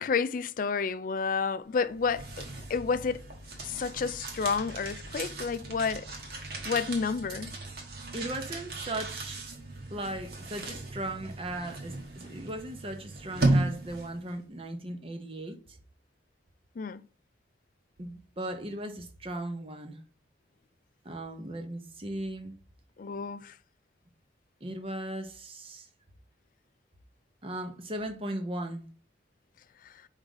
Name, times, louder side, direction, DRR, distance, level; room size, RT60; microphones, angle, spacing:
voice 1, 0.0-3.2 3.7-6.1 6.6-7.5 16.8-17.0 23.0-23.6, left 5 dB, 45° left, 0.4 m, -30 dB
sound 1, 1.8-14.3, right 2 dB, 55° right, 1.4 m, -35 dB
voice 2, 8.1-9.4 9.9-15.8 18.0-20.0 21.0-22.6 24.6-25.9 27.4-28.8, right 1 dB, 30° right, 0.9 m, -37 dB
4.8 x 3.6 x 5.4 m
head